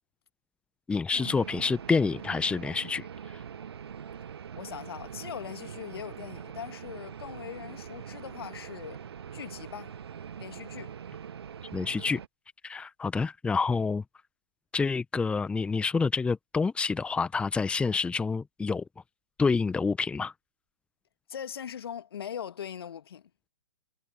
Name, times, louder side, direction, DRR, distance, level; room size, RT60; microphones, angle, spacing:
voice 1, 0.9-3.1 11.7-12.2 12.6-14.0 14.7-18.8 19.4-20.3, left 4 dB, 5° left, 1.3 m, -28 dB
sound 1, 1.1-12.3, right 8 dB, 60° right, 1.8 m, -43 dB
voice 2, 4.6-9.0 9.3-10.0 10.4-11.0 21.3-23.3, left 8 dB, 55° left, 2.2 m, -40 dB
figure-of-eight pair, 120°, 15 cm